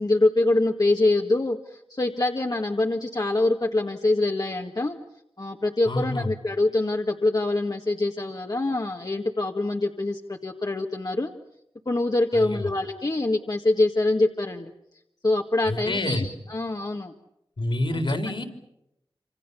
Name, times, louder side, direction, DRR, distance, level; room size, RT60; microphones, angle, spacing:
voice 1, 0.0-5.0 5.4-11.3 11.9-14.7 15.2-17.1 17.9-18.0, left 2 dB, 45° left, 2 dB, 1.7 m, -24 dB
voice 2, 5.9-6.3 12.3-12.7 15.7-16.3 17.6-18.4, left 1 dB, 65° left, 5 dB, 4.1 m, -27 dB
27.0 x 26.0 x 7.0 m, 0.84 s
cardioid pair, 50°, 9 cm